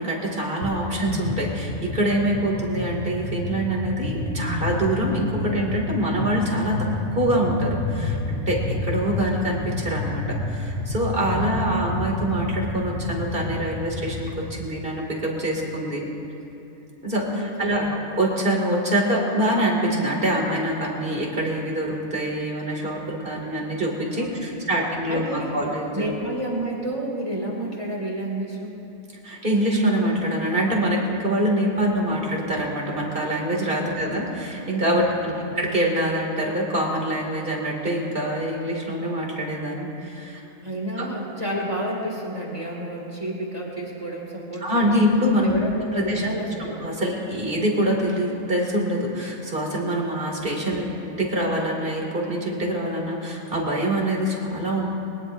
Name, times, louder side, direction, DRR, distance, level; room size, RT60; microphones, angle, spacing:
voice 1, 0.0-16.1 17.0-26.1 29.2-40.4 41.0-41.1 44.6-45.6 45.9-46.3 46.8-54.9, right 1 dB, 40° right, -2 dB, 2.8 m, -25 dB
sound 1, 0.6-0.8 1.0-14.3, left 2 dB, 55° left, 3.8 m, -29 dB
voice 2, 11.4-11.8 17.3-17.9 24.1-24.8 25.1-25.6 25.9-28.8 31.6-31.8 33.8-34.1 34.9-35.5 40.6-45.1 45.4-46.8 50.7-51.0, right 1 dB, 25° right, -3 dB, 2.4 m, -31 dB
22.0 x 20.0 x 2.7 m, 3.0 s
omnidirectional pair, 1.4 m